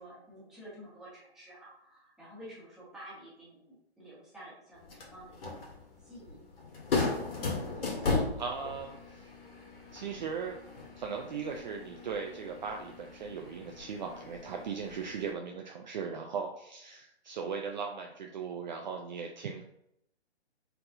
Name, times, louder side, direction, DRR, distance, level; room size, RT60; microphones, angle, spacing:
voice 1, 0.0-6.4, right 1 dB, ahead, -9 dB, 1.5 m, -51 dB
sound 1, 4.8-15.3, left 3 dB, 60° left, 1.6 m, -37 dB
voice 2, 8.4-9.2 9.9-10.6 11.0-19.6, right 6 dB, 45° right, 2 dB, 0.5 m, -38 dB
4.4 x 4.0 x 2.6 m, 0.76 s
hypercardioid pair, 145°, 34 cm